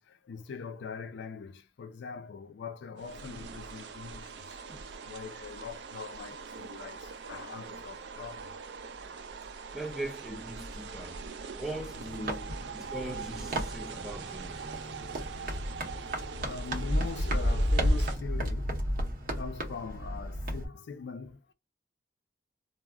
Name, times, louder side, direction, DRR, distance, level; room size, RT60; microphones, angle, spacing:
voice 1, 0.0-8.5 12.0-12.3 12.8-12.9 15.4-15.5 15.9-16.1 16.4-18.8 19.3-21.5, left 5 dB, 80° left, 0.4 m, -42 dB
sound 1, 3.0-18.2, right 5 dB, 70° right, 0.4 m, -43 dB
voice 2, 9.7-11.2 11.5-14.7, right 1 dB, ahead, 0.5 m, -40 dB
sound 2, 11.8-20.7, equal, 55° right, 0.8 m, -32 dB
2.3 x 2.0 x 3.5 m
head